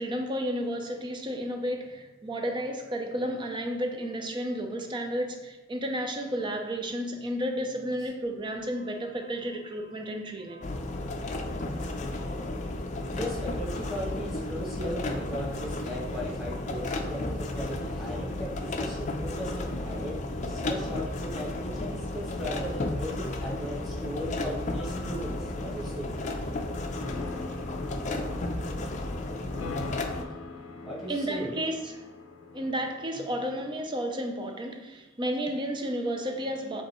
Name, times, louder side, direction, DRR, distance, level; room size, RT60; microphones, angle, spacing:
voice 1, 0.0-10.7 31.1-32.0 32.5-36.8, equal, 25° right, 0.5 m, -32 dB
sound 1, 10.6-30.2, left 2 dB, 35° left, 0.5 m, -33 dB
voice 2, 13.1-26.1 30.8-31.6, equal, ahead, 1.5 m, -37 dB
sound 2, 23.3-33.8, left 3 dB, 85° left, 0.5 m, -44 dB
5.3 x 3.3 x 3.0 m
head